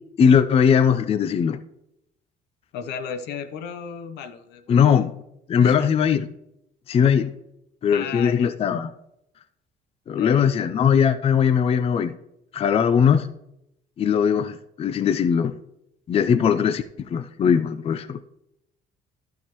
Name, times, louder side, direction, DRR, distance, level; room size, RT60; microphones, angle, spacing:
voice 1, 0.2-1.6 4.7-5.1 5.5-6.2 6.9-7.3 7.8-8.9 10.1-12.2 12.5-13.3 14.0-15.6 16.1-18.2, left 7 dB, 35° left, 12 dB, 0.4 m, -20 dB
voice 2, 2.7-5.0 5.6-5.9 7.9-8.5 10.1-10.5, left 7 dB, 85° left, 10 dB, 0.7 m, -34 dB
11.5 x 7.0 x 3.0 m, 0.83 s
cardioid pair, 110°, 17 cm